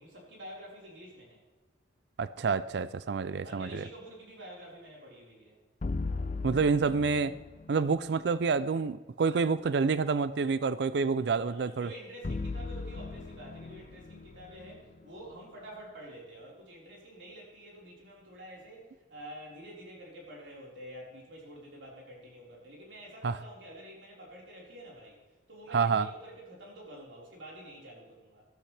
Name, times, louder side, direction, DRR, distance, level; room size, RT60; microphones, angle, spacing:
voice 1, 0.0-1.4 3.4-5.6 11.2-25.2 25.5-28.4, right 1 dB, 90° right, -3 dB, 4.6 m, -48 dB
voice 2, 2.2-3.8 6.4-7.4 7.7-11.9 23.2-23.4 25.7-26.1, right 5 dB, 65° right, 15 dB, 0.4 m, -28 dB
sound 1, 5.8-8.0 12.2-15.5, left 3 dB, 45° left, 0.5 m, -38 dB
14.5 x 12.5 x 3.4 m, 1.2 s
head